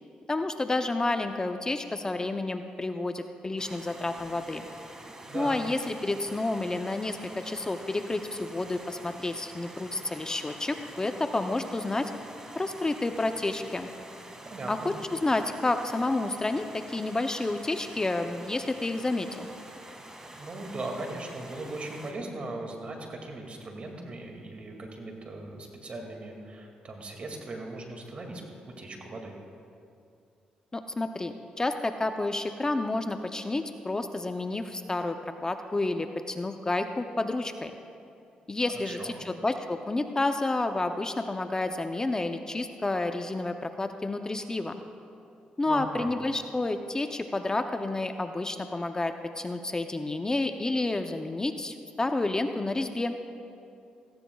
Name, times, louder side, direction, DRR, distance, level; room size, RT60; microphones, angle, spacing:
voice 1, 0.3-4.6 5.3-12.1 12.6-13.9 14.7-19.5 30.7-37.7 38.5-44.7 45.6-53.1, left 2 dB, 25° left, 7 dB, 0.6 m, -30 dB
Stream, 3.6-22.1, right 1 dB, 20° right, 2.0 m, -47 dB
voice 2, 5.2-5.6 14.4-14.9 20.4-29.4 38.8-39.2 45.7-46.1, right 2 dB, 45° right, 2 dB, 2.2 m, -39 dB
17.0 x 15.0 x 2.3 m, 2.5 s
supercardioid pair, 65°, 3 cm